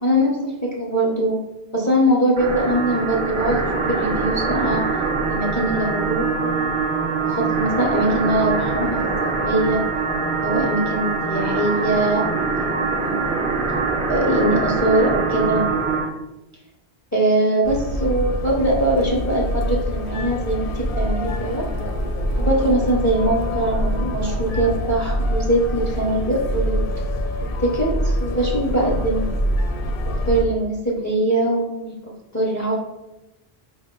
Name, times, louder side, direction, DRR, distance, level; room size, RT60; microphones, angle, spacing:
voice 1, 0.0-1.4 1.7-4.9 5.3-6.7 7.2-9.9 10.4-13.3 14.1-15.7 17.1-21.7 22.4-26.9 27.6-29.3 30.0-32.7, right 1 dB, 25° left, -4 dB, 0.5 m, -22 dB
sound 1, 2.4-16.1, right 4 dB, 40° right, 0.5 m, -23 dB
sound 2, 17.6-30.4, equal, 65° left, 0.7 m, -25 dB
4.6 x 2.1 x 3.6 m, 0.97 s
omnidirectional pair, 1.1 m